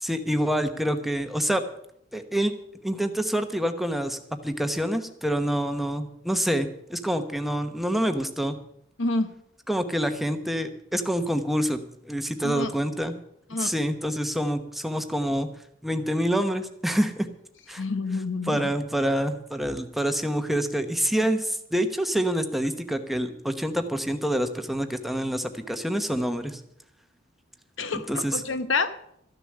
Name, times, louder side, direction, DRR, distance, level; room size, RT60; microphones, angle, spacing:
voice 1, 0.0-1.6 2.1-2.5 2.8-8.6 9.7-13.1 13.6-15.5 15.8-17.3 17.7-17.8 18.5-26.6 27.9-28.4, equal, ahead, 8 dB, 1.0 m, -27 dB
voice 2, 9.0-9.3 12.4-12.7 13.5-13.7 17.8-18.7 27.8-29.0, left 3 dB, 70° left, 11 dB, 1.1 m, -28 dB
14.0 x 7.0 x 10.0 m, 0.73 s
head